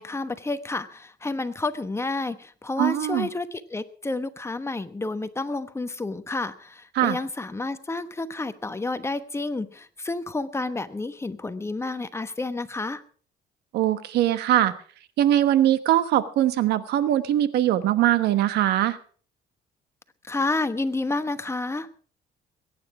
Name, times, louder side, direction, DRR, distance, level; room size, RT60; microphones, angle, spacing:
voice 1, 0.0-13.0 20.2-21.9, left 2 dB, 15° left, 11 dB, 1.1 m, -30 dB
voice 2, 2.8-3.3 6.9-7.2 13.7-14.7 15.2-19.0, right 12 dB, 80° right, 13 dB, 1.2 m, -21 dB
21.5 x 9.5 x 4.8 m, 0.43 s
cardioid pair, 110°, 17 cm